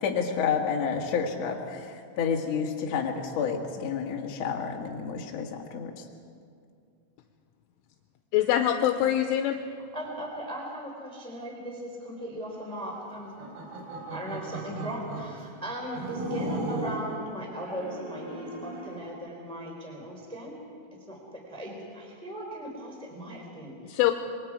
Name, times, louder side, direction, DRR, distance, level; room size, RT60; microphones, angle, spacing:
voice 1, 0.0-6.0, left 6 dB, 55° left, 0 dB, 1.9 m, -30 dB
voice 2, 8.3-9.6 23.8-24.1, left 12 dB, 80° left, 5 dB, 3.2 m, -24 dB
voice 3, 9.9-13.3 14.1-20.6 21.1-24.0, equal, ahead, 0 dB, 2.6 m, -38 dB
sound 1, 13.2-15.3 15.9-17.1 17.6-19.0, right 2 dB, 60° right, 4.7 m, -36 dB
27.5 x 22.5 x 4.9 m, 2.3 s
omnidirectional pair, 5.8 m